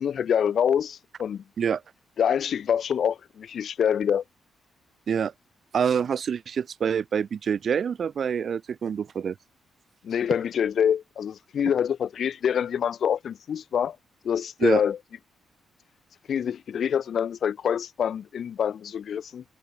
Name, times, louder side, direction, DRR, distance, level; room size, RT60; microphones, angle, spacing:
voice 1, 0.0-1.4 2.2-4.2 10.0-14.0 14.2-15.0 16.3-19.4, left 8 dB, 55° left, 2.2 m, -26 dB
voice 2, 5.7-9.3 14.6-14.8, right 7 dB, 50° right, 2.8 m, -26 dB
cardioid pair, 145°, 0 cm